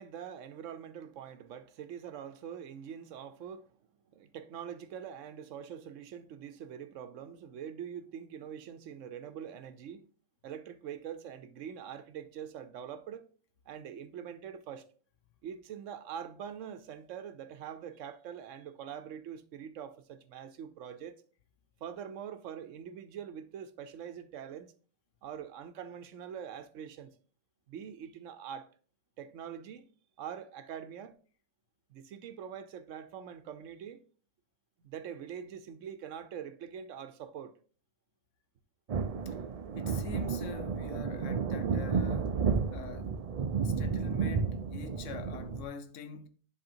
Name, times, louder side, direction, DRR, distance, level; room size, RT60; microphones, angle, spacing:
voice 1, 0.0-3.7 4.1-10.1 10.4-13.3 13.7-14.9 15.4-21.2 21.8-24.7 25.2-27.1 27.7-28.7 29.2-29.9 30.2-31.2 31.9-34.0 34.8-37.6, right 8 dB, 80° right, 1.0 m, -44 dB
sound 1, 38.9-45.6, right 5 dB, 65° right, 0.3 m, -32 dB
voice 2, 39.7-43.1 43.6-46.3, left 7 dB, 75° left, 1.1 m, -45 dB
10.5 x 3.5 x 2.7 m
omnidirectional pair, 1.3 m